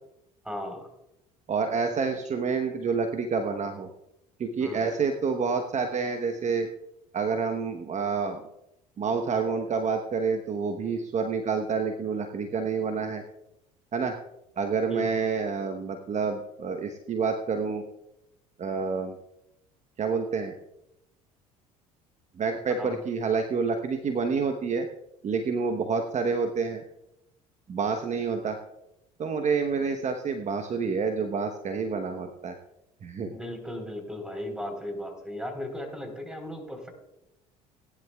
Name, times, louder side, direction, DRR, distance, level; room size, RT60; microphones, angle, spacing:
voice 1, 0.4-0.9 4.6-4.8 14.9-15.1 22.7-23.0 33.3-36.9, left 1 dB, 5° right, 4 dB, 3.8 m, -36 dB
voice 2, 1.5-3.9 4.4-6.7 7.1-8.4 9.0-13.2 13.9-14.2 14.6-17.8 18.6-19.1 20.0-20.6 22.4-24.9 25.2-26.8 27.7-28.6 29.2-32.6 33.0-33.3, right 5 dB, 40° right, 6 dB, 1.0 m, -28 dB
18.5 x 10.5 x 2.3 m, 0.85 s
hypercardioid pair, 65°, 18 cm